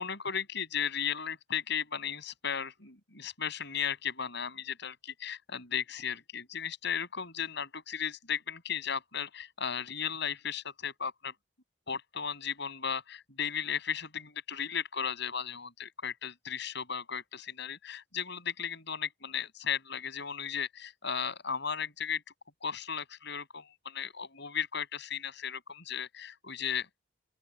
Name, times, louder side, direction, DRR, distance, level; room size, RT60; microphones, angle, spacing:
voice 1, 0.0-11.3 11.9-22.2 22.6-26.9, left 7 dB, 65° left, 7.6 m, -35 dB
open air
head